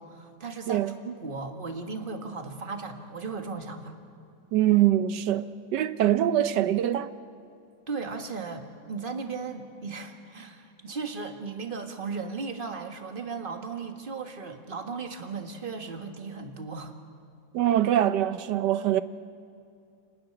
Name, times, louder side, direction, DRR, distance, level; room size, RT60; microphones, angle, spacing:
voice 1, 0.0-4.0 7.9-16.9, right 4 dB, 30° right, 1.6 m, -36 dB
voice 2, 4.5-7.1 17.5-19.0, right 12 dB, 70° right, 1.3 m, -23 dB
29.0 x 12.5 x 9.9 m
omnidirectional pair, 2.1 m